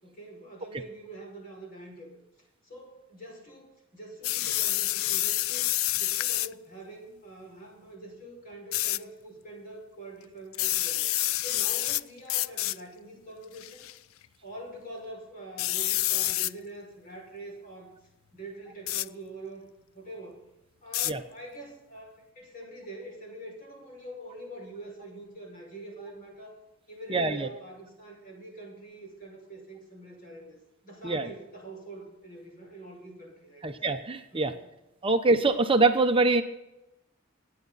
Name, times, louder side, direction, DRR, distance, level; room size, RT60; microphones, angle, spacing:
voice 1, 0.0-2.1 2.6-11.0 11.4-13.9 14.4-18.0 18.3-19.7 19.9-20.4 20.8-26.6 26.9-33.7 34.3-34.7, right 1 dB, 45° left, 0 dB, 5.8 m, -45 dB
sound 1, 4.2-6.5 8.7-9.0 10.5-12.0 12.3-12.8 13.6-13.9 15.6-16.5 18.9-19.1 20.9-21.1, left 16 dB, 80° left, 0.4 m, -28 dB
voice 2, 27.1-27.5 31.0-31.3 33.6-34.5 35.0-36.4, right 3 dB, 25° right, 7 dB, 0.9 m, -24 dB
24.0 x 9.5 x 4.1 m, 0.93 s
head